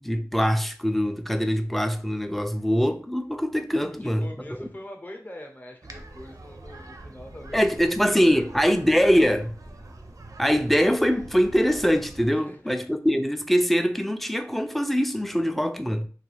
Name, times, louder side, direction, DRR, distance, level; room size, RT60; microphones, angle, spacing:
voice 1, 0.0-4.3 7.5-9.6 10.4-16.1, equal, ahead, 0.3 m, -23 dB
voice 2, 4.0-7.7 8.1-8.8 12.3-12.7, left 1 dB, 30° left, 0.7 m, -42 dB
sound 1, 5.8-12.3, right 2 dB, 65° right, 0.5 m, -44 dB
2.4 x 2.3 x 3.2 m
wide cardioid pair, 45°, 6 cm